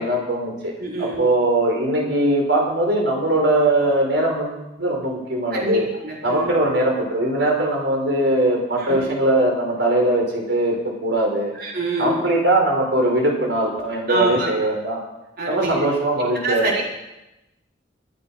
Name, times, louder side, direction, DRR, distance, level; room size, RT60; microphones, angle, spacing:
voice 1, 0.0-0.7 1.0-5.9 6.2-11.5 12.0-15.0 15.5-16.8, right 1 dB, 75° right, 0 dB, 5.2 m, -21 dB
voice 2, 0.8-1.2 5.5-6.6 8.8-9.0 11.5-12.2 14.1-14.5 15.4-15.8 16.4-16.8, right 2 dB, 60° right, -3 dB, 4.3 m, -26 dB
24.5 x 8.7 x 6.1 m, 0.97 s
head